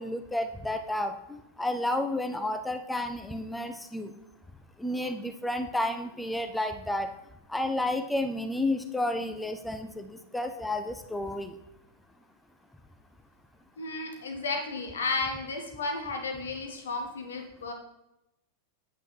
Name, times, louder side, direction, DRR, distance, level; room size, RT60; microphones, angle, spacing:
voice 1, 0.0-4.1 4.8-7.1 7.5-11.5, left 1 dB, 5° left, 8 dB, 0.7 m, -31 dB
voice 2, 13.8-17.7, left 3 dB, 65° left, 3 dB, 1.5 m, -33 dB
8.9 x 8.6 x 3.4 m, 0.89 s
figure-of-eight pair, 90°, 0 cm